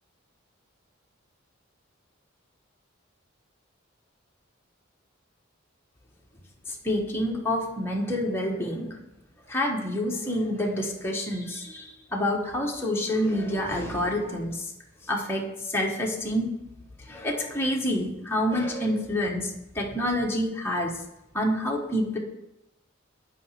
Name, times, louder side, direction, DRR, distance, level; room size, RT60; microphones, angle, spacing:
voice 1, 6.8-9.0 9.5-14.7 15.1-16.5 17.1-20.9 21.3-22.2, left 1 dB, 10° left, -1 dB, 1.3 m, -28 dB
7.6 x 5.1 x 5.7 m, 0.88 s
head